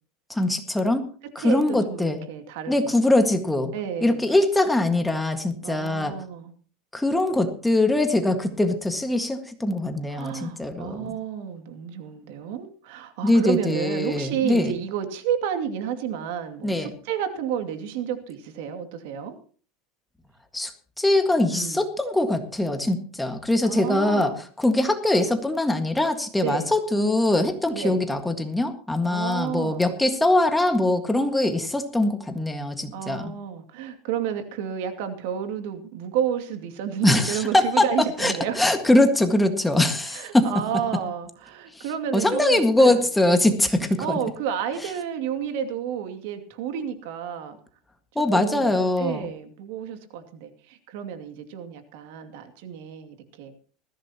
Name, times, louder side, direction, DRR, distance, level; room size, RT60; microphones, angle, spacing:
voice 1, 0.3-1.0 1.3-2.3 2.7-3.7 4.0-6.1 6.9-11.1 13.2-14.7 16.6-16.9 20.5-20.7 21.0-33.3 37.0-37.9 38.2-40.5 41.8-41.9 42.1-44.2 48.1-49.3, left 1 dB, 5° left, 6 dB, 1.8 m, -22 dB
voice 2, 1.4-2.9 3.7-4.3 5.6-6.5 10.1-19.3 21.5-21.9 23.6-24.4 26.4-26.7 27.7-28.0 29.0-29.9 32.9-38.6 40.0-43.0 44.0-47.6 48.3-53.6, right 8 dB, 70° right, 7 dB, 2.5 m, -31 dB
20.5 x 15.0 x 3.0 m, 0.43 s
supercardioid pair, 150°, 0 cm